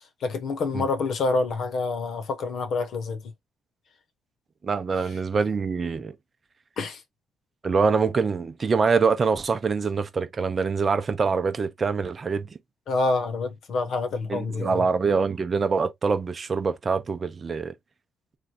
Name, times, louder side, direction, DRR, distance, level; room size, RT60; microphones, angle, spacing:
voice 1, 0.2-3.3 6.8-7.0 12.9-14.8, left 3 dB, 65° left, 1.0 m, -27 dB
voice 2, 4.6-6.1 7.6-12.5 14.3-17.7, right 5 dB, 35° right, 0.7 m, -24 dB
3.3 x 2.4 x 4.2 m
cardioid pair, 90°, 0 cm